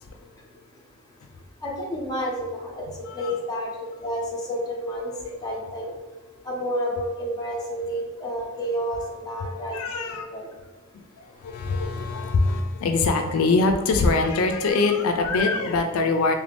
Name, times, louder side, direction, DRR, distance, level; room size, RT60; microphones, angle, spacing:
voice 1, 1.6-2.8 3.1-3.7 4.0-5.1 5.4-5.9 6.4-9.8 10.1-10.5, equal, 20° left, -3 dB, 0.6 m, -30 dB
voice 2, 3.1-3.4 6.4-6.5 7.7-7.8 8.3-8.4 9.0-9.1 9.7-10.3 10.9-16.3, left 3 dB, 75° left, 5 dB, 0.3 m, -23 dB
3.2 x 2.5 x 3.4 m, 1.3 s
head